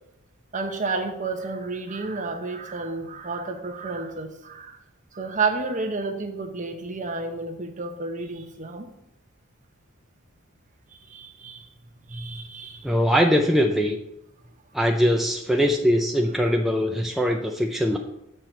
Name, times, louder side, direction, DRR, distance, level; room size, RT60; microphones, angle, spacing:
voice 1, 0.5-4.8 5.1-8.9 11.1-11.7 12.1-12.9 17.1-17.2, right 3 dB, 35° right, 6 dB, 0.9 m, -31 dB
voice 2, 12.8-14.0 14.7-18.0, equal, ahead, 1 dB, 0.4 m, -21 dB
7.7 x 4.5 x 6.6 m, 0.84 s
head